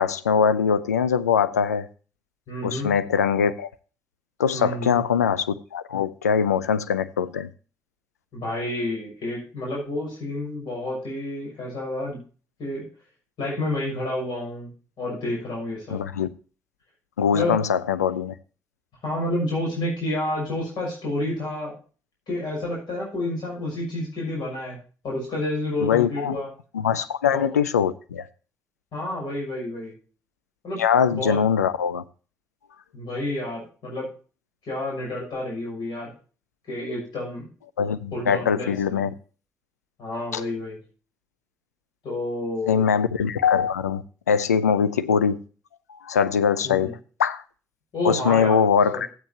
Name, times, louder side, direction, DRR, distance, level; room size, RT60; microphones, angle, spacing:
voice 1, 0.0-1.9 2.6-3.7 4.4-7.5 15.9-16.3 17.2-18.3 25.8-26.3 26.7-28.3 30.8-32.0 37.8-39.1 40.3-40.4 42.7-45.4 45.9-47.4 48.0-49.1, left 7 dB, 90° left, 0.4 m, -22 dB
voice 2, 2.5-2.9 4.5-5.0 8.3-12.2 12.6-12.8 13.4-14.7 15.0-16.0 17.3-17.6 19.0-21.7 22.3-24.8 25.0-26.5 27.3-27.6 28.9-29.9 30.6-30.8 31.1-31.4 32.9-34.1 34.7-36.1 36.7-37.5 38.1-39.0 40.0-40.8 42.0-42.9 46.6-46.9 47.9-48.6 48.9-49.0, left 1 dB, 60° left, 6.2 m, -29 dB
13.5 x 9.0 x 2.9 m
figure-of-eight pair, 40°, 8 cm